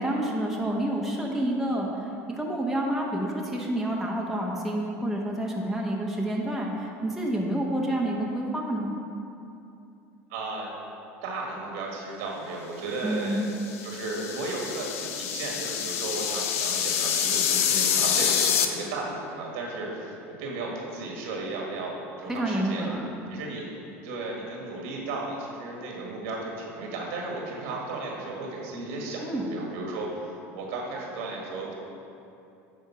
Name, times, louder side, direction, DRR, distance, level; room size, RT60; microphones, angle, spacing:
voice 1, 0.0-8.9 13.0-13.4 22.3-23.1 29.2-29.5, right 1 dB, 5° right, -3 dB, 1.2 m, -28 dB
voice 2, 10.3-10.7 11.2-22.9 23.3-31.7, right 2 dB, 80° right, -2 dB, 1.7 m, -34 dB
sound 1, 13.5-18.7, left 8 dB, 85° left, 0.6 m, -26 dB
9.8 x 3.7 x 5.7 m, 2.7 s
hypercardioid pair, 90°, 8 cm